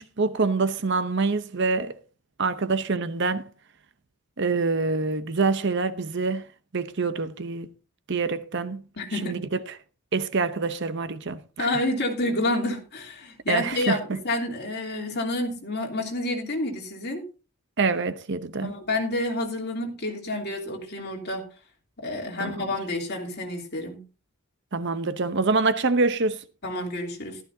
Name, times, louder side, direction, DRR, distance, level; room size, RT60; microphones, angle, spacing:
voice 1, 0.0-2.0 2.4-3.5 4.4-6.5 6.7-7.7 8.1-8.8 9.2-9.6 10.1-11.7 13.5-14.2 17.8-18.7 22.4-22.5 24.7-26.5, right 4 dB, 50° right, 0.8 m, -26 dB
voice 2, 9.0-9.4 11.6-17.2 18.6-21.4 22.0-24.0 26.6-27.4, left 2 dB, 45° left, 3.0 m, -29 dB
14.5 x 12.5 x 2.7 m
head